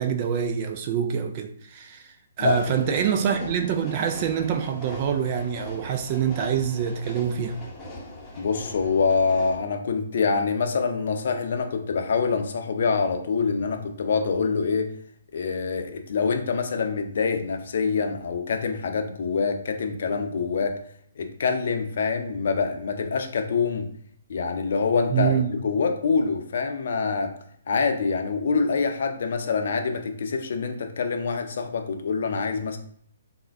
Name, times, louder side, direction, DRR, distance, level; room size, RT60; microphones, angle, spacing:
voice 1, 0.0-7.6 25.1-25.5, right 8 dB, 35° right, 0.3 m, -26 dB
voice 2, 2.4-3.0 8.4-14.9 15.3-20.8 21.2-23.9 24.3-27.3 27.7-32.8, left 5 dB, 60° left, 0.5 m, -25 dB
sound 1, 2.4-9.6, left 1 dB, 15° left, 0.8 m, -41 dB
3.4 x 2.1 x 3.3 m
figure-of-eight pair, 140°, 0 cm